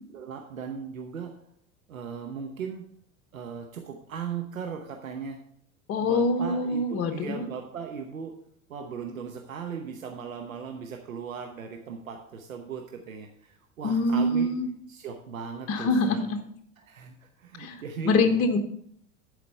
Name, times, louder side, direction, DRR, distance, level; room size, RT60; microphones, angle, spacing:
voice 1, 0.1-1.3 1.9-2.8 3.3-5.4 6.0-8.4 8.7-14.5 14.9-16.3 16.8-18.2, right 6 dB, 75° right, 3 dB, 1.0 m, -38 dB
voice 2, 5.9-7.5 13.8-14.7 15.7-16.3 17.6-18.6, left 2 dB, 35° left, 6 dB, 1.0 m, -25 dB
11.5 x 5.0 x 5.3 m, 0.67 s
figure-of-eight pair, 75°, 41 cm